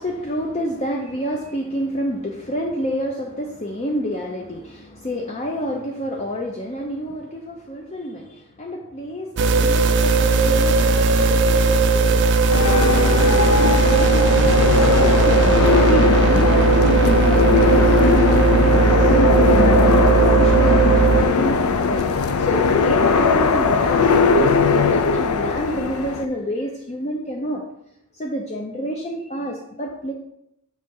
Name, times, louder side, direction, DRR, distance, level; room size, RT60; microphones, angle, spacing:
voice 1, 0.0-12.2 12.6-14.5 14.9-15.5 15.8-20.0 20.2-27.6 28.1-30.1, equal, 30° left, 0 dB, 0.6 m, -29 dB
sound 1, 9.4-21.2, right 4 dB, 55° right, 0.4 m, -17 dB
sound 2, 12.5-26.3, left 4 dB, 85° left, 0.5 m, -19 dB
7.5 x 3.3 x 5.3 m, 0.82 s
head